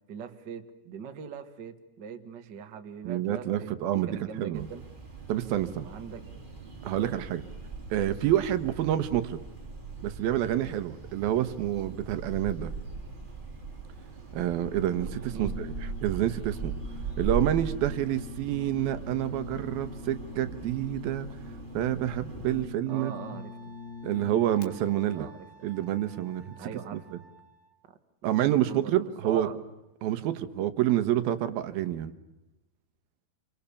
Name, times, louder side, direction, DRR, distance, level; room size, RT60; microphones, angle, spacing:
voice 1, 0.1-4.9 5.8-6.2 6.9-7.1 15.3-15.6 22.9-23.7 25.1-25.8 26.6-27.0 28.7-29.6, right 7 dB, 85° right, 7 dB, 0.9 m, -42 dB
voice 2, 3.0-4.7 5.3-5.9 6.8-7.4 7.9-9.4 10.0-12.7 14.3-16.7 17.2-21.3 21.7-23.1 24.0-25.3 25.6-26.5 26.9-27.0 28.2-29.5 30.0-32.1, right 12 dB, 70° right, 11 dB, 2.7 m, -28 dB
sound 1, 4.5-22.7, right 4 dB, 15° right, 2.3 m, -40 dB
Brass instrument, 15.4-24.7, left 6 dB, 85° left, 5.9 m, -44 dB
Wind instrument woodwind instrument, 22.9-27.7, right 3 dB, 10° left, 1.5 m, -54 dB
28.5 x 25.5 x 7.1 m, 0.99 s
omnidirectional pair, 5.0 m